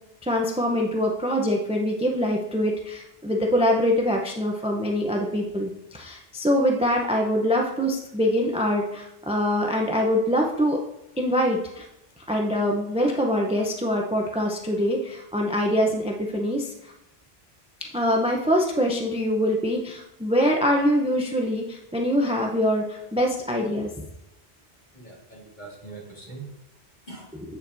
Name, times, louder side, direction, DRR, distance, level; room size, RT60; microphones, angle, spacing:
voice 1, 0.2-10.8 11.2-11.8 12.3-16.9 17.9-23.9, equal, 5° right, 0 dB, 0.6 m, -24 dB
voice 2, 24.9-27.4, right 3 dB, 45° left, -4 dB, 2.3 m, -43 dB
8.4 x 7.1 x 2.7 m, 0.83 s
omnidirectional pair, 1.1 m